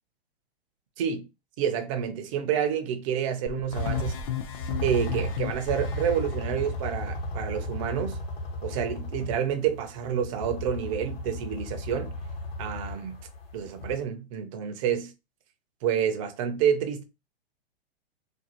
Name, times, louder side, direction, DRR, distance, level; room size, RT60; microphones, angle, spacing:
voice 1, 1.6-4.2 4.8-8.2 8.6-12.1 12.6-13.2 13.5-15.1 15.8-17.0, right 8 dB, 35° right, 0.4 m, -28 dB
sound 1, 3.5-6.2, left 10 dB, 35° left, 0.4 m, -34 dB
sound 2, 3.7-14.0, left 1 dB, 65° left, 1.0 m, -34 dB
2.5 x 2.3 x 2.9 m
hypercardioid pair, 140°, 32 cm